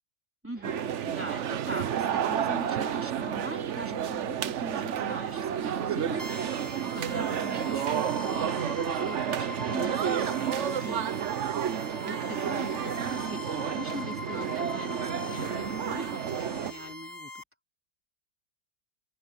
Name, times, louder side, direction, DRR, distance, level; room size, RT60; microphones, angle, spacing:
voice 1, 0.4-11.1 11.5-17.4, right 1 dB, 5° right, 3.3 m, -42 dB
sound 1, 0.5-17.0, right 1 dB, 30° right, 7.6 m, -51 dB
sound 2, 0.6-16.7, right 9 dB, 55° right, 0.8 m, -31 dB
sound 3, 6.2-17.4, left 4 dB, 10° left, 2.5 m, -42 dB
open air
omnidirectional pair, 2.1 m